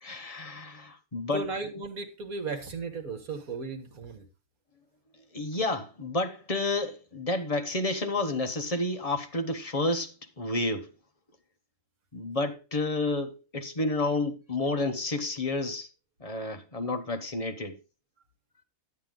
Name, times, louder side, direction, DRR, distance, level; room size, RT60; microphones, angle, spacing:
voice 1, 0.0-1.5 5.3-10.9 12.1-15.9 16.2-17.8, left 2 dB, 25° left, 0.9 m, -30 dB
voice 2, 1.3-4.3, right 4 dB, 65° right, 1.9 m, -35 dB
11.0 x 8.8 x 3.8 m
omnidirectional pair, 1.7 m